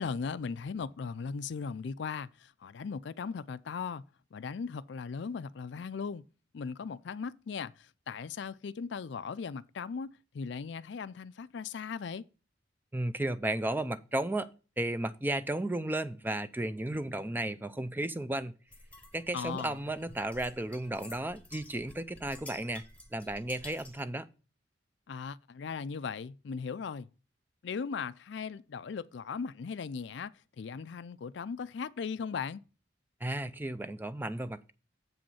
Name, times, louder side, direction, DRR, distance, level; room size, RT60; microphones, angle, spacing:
voice 1, 0.0-4.0 4.3-6.2 6.5-12.3 19.3-19.8 25.1-27.1 27.6-32.6, left 5 dB, 65° left, 0.4 m, -38 dB
voice 2, 12.9-14.5 14.8-18.5 19.1-22.8 23.1-24.3 33.2-34.7, right 1 dB, 10° right, 0.4 m, -34 dB
sound 1, 18.7-24.1, left 2 dB, 5° left, 1.1 m, -51 dB
7.8 x 5.2 x 5.6 m
head